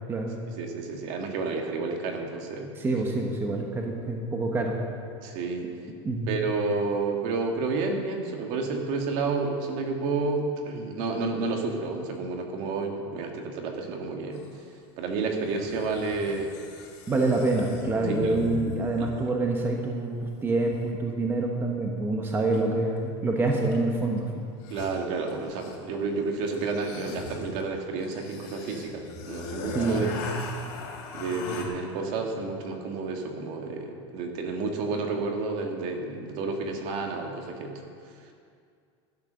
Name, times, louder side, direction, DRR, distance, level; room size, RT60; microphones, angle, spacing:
voice 1, 0.5-2.7 5.2-5.7 6.3-14.5 15.0-16.5 18.1-18.4 19.0-19.3 24.7-30.3 31.1-37.7, right 3 dB, 50° right, 2 dB, 1.9 m, -30 dB
voice 2, 2.8-4.8 6.0-6.3 17.1-20.1 20.4-24.3 29.7-30.1, right 2 dB, 15° right, 1 dB, 1.2 m, -26 dB
sound 1, 14.3-14.4 15.6-19.1 22.5-22.6 23.5-23.9 24.2-24.3 24.5-25.9 26.5-31.7, left 4 dB, 55° left, 3.2 m, -38 dB
12.5 x 9.7 x 6.4 m, 2.3 s
supercardioid pair, 145°, 15 cm